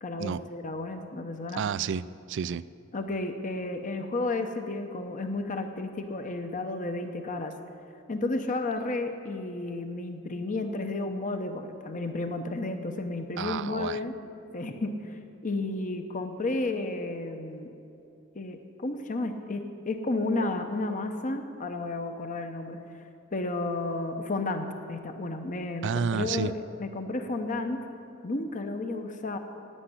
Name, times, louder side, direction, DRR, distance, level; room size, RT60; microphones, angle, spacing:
voice 1, 0.0-1.6 2.9-7.5 8.1-14.1 14.5-17.7 18.3-22.8 23.3-27.9 28.2-29.4, left 2 dB, 35° left, 6 dB, 0.8 m, -32 dB
voice 2, 1.5-2.6 13.4-14.0 25.8-26.5, right 6 dB, 55° right, 17 dB, 0.4 m, -30 dB
11.5 x 9.0 x 9.8 m, 2.7 s
head